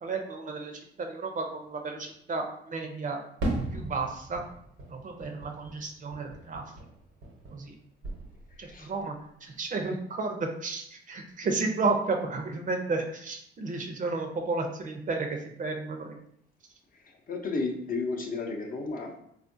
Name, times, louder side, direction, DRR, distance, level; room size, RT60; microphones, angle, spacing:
voice 1, 0.0-3.2 3.7-4.4 4.9-6.6 7.5-7.7 8.6-9.1 9.4-16.2, right 3 dB, 40° right, 3 dB, 0.5 m, -32 dB
Fireworks, 3.4-7.8 8.0-8.8, right 1 dB, 85° right, 1.0 m, -37 dB
voice 2, 17.3-19.2, left 3 dB, 45° left, 1 dB, 0.6 m, -32 dB
3.5 x 2.4 x 2.6 m, 0.69 s
cardioid pair, 90°, 20 cm